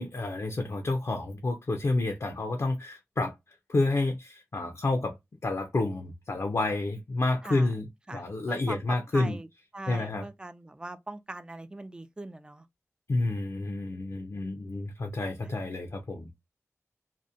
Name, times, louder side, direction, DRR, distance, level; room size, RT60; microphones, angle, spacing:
voice 1, 0.0-3.4 3.7-5.2 5.4-9.4 9.9-10.3 13.1-16.3, left 2 dB, 65° left, 0.5 m, -29 dB
voice 2, 8.1-9.5 9.7-12.7 15.4-15.5, right 2 dB, 15° right, 0.3 m, -41 dB
2.7 x 2.1 x 2.3 m
wide cardioid pair, 65°, 5 cm